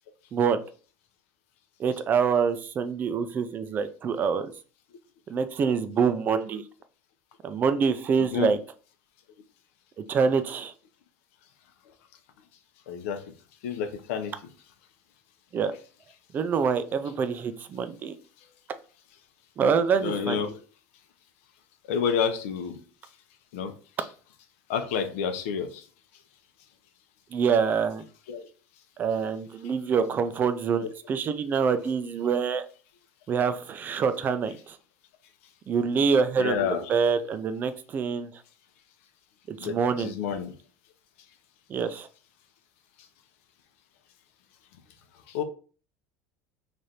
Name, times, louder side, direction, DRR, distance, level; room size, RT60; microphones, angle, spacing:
voice 1, 1.8-4.5 5.3-6.6 7.4-8.6 10.0-10.7 15.5-15.7 16.3-18.2 19.6-20.4 27.3-28.0 29.0-32.6 33.3-34.8 35.7-36.6 36.9-38.3 39.5-40.1 41.7-42.1, right 6 dB, 25° right, 10 dB, 0.4 m, -26 dB
voice 2, 12.9-13.2 13.6-14.3 20.0-20.6 21.9-22.8 23.5-23.7 24.7-25.7 28.3-28.4 36.4-36.9 39.6-40.5 45.3-45.4, left 7 dB, 85° left, 7 dB, 0.7 m, -29 dB
3.3 x 2.5 x 4.2 m, 0.39 s
cardioid pair, 150°, 7 cm